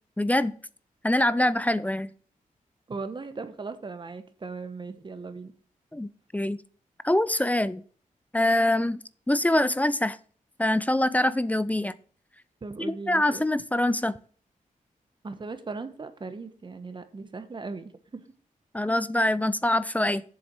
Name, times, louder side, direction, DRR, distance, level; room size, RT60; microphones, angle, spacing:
voice 1, 0.2-0.5 1.0-2.1 5.9-6.6 7.0-7.8 8.3-9.0 9.3-10.2 10.6-11.9 12.8-14.2 18.7-20.2, left 1 dB, 10° left, 16 dB, 0.4 m, -24 dB
voice 2, 2.9-5.5 12.6-13.4 15.2-18.2, right 4 dB, 35° right, 9 dB, 1.2 m, -38 dB
7.7 x 7.2 x 4.5 m, 0.43 s
wide cardioid pair, 125°, 14 cm